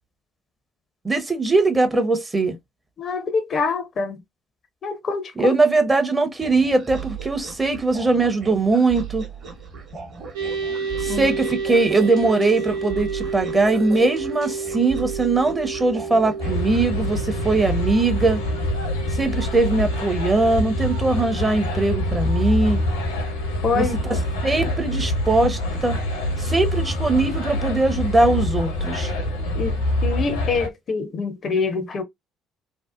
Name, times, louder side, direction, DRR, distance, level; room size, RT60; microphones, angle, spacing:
voice 1, 1.0-2.6 5.4-9.2 11.0-18.4 19.1-22.8 23.7-24.2 24.4-26.0 26.4-29.1, right 3 dB, 20° right, 0.6 m, -21 dB
voice 2, 3.0-4.2 4.8-5.5 11.1-11.3 23.6-24.2 29.5-32.0, left 4 dB, 40° left, 0.5 m, -25 dB
sound 1, 6.4-16.9, right 6 dB, 45° right, 0.9 m, -37 dB
sound 2, 10.3-25.1, right 5 dB, 75° right, 0.8 m, -32 dB
sound 3, 16.4-30.7, left 1 dB, 75° left, 0.7 m, -25 dB
2.6 x 2.1 x 2.3 m
figure-of-eight pair, 50°, 0 cm